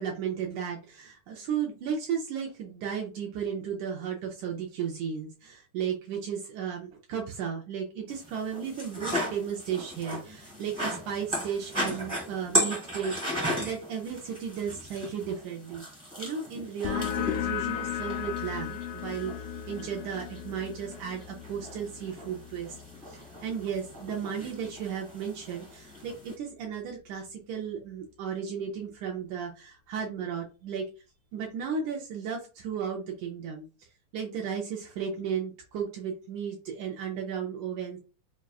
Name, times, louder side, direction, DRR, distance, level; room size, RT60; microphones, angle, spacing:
voice 1, 0.0-15.8 16.2-22.8 23.1-30.9 31.3-33.7 34.1-38.0, right 7 dB, 80° right, 0 dB, 1.7 m, -34 dB
sound 1, 8.1-26.3, equal, 15° right, 0.6 m, -36 dB
sound 2, 16.9-24.1, left 9 dB, 80° left, 2.1 m, -36 dB
6.0 x 2.3 x 2.3 m, 0.33 s
omnidirectional pair, 4.2 m